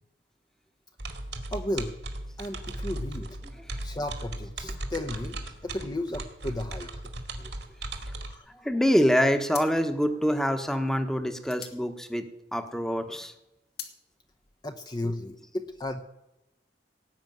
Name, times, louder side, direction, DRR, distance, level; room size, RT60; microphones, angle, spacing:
sound 1, 1.0-8.3, right 2 dB, 75° right, 2.2 m, -37 dB
voice 1, 1.5-1.9 2.4-3.3 3.8-7.0 8.2-8.5 14.6-16.0, left 1 dB, 25° left, 6 dB, 0.9 m, -34 dB
voice 2, 8.6-12.3 12.5-13.3 15.0-15.1, equal, 5° left, 7 dB, 1.2 m, -25 dB
sound 2, 8.8-9.1 9.5-12.8 13.2-14.0, left 9 dB, 65° left, 2.1 m, -44 dB
18.0 x 6.3 x 9.3 m, 0.92 s
head